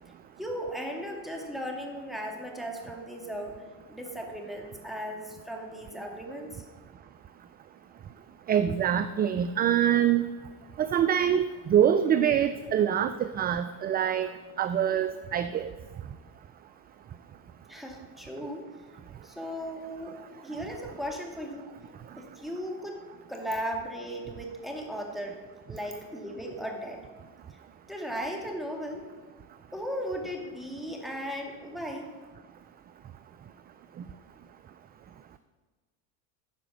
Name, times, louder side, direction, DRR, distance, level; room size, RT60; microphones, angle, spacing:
voice 1, 0.4-3.6 3.9-6.6 17.7-18.6 19.2-20.1 20.4-21.7 22.2-23.0 23.3-25.4 25.7-27.0 27.9-29.0 29.7-32.1, equal, ahead, 1 dB, 2.3 m, -36 dB
voice 2, 8.5-10.3 10.8-14.3 14.6-15.7, right 9 dB, 25° right, 11 dB, 0.3 m, -25 dB
11.0 x 5.0 x 7.1 m, 1.4 s
hypercardioid pair, 80°, 43 cm